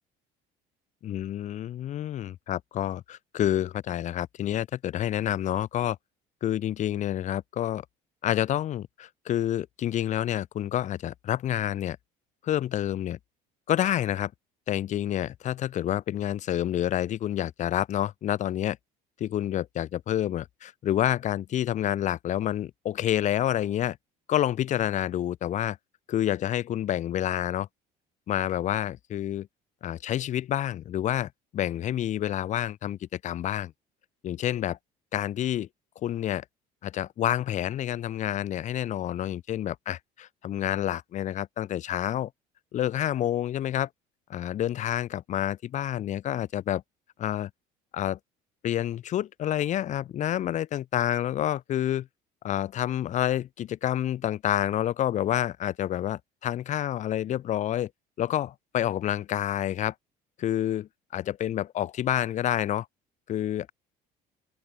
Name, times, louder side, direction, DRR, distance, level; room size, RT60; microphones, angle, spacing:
voice 1, 1.0-6.0 6.4-7.8 8.2-12.0 12.4-13.2 13.7-14.3 14.7-18.8 19.2-24.0 24.3-25.8 26.1-27.7 28.3-29.5 29.8-33.7 34.2-34.8 35.1-35.7 36.0-36.4 36.8-42.3 42.7-43.9 44.3-46.8 47.2-47.5 47.9-48.2 48.6-52.1 52.4-57.9 58.2-59.9 60.4-62.9 63.3-63.7, left 11 dB, 50° left, 2.3 m, -28 dB
open air
cardioid pair, 130°, 16 cm